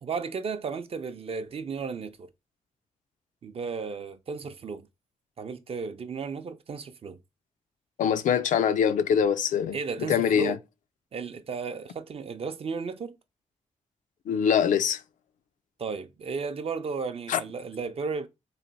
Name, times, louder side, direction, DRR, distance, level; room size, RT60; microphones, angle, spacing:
voice 1, 0.0-2.3 3.4-4.8 5.4-7.2 9.7-10.6 11.1-13.2 15.8-18.3, right 5 dB, 50° right, 0.5 m, -34 dB
voice 2, 8.0-10.6 14.3-15.0 17.3-17.4, left 8 dB, 90° left, 0.4 m, -24 dB
3.2 x 2.9 x 3.9 m
cardioid pair, 95°, 13 cm